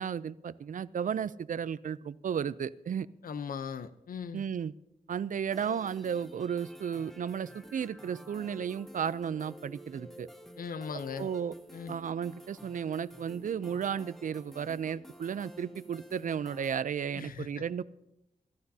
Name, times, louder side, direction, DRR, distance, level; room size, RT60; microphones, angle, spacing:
voice 1, 0.0-3.1 4.3-4.7 5.1-10.3 11.2-11.5 11.9-17.8, right 7 dB, 65° right, 17 dB, 0.5 m, -34 dB
voice 2, 3.2-4.4 10.6-11.3 11.7-11.9 17.1-17.6, left 6 dB, 80° left, 12 dB, 0.8 m, -39 dB
sound 1, 5.5-16.8, equal, 5° left, 1.3 m, -51 dB
27.0 x 14.0 x 2.8 m, 0.89 s
wide cardioid pair, 100°, 14 cm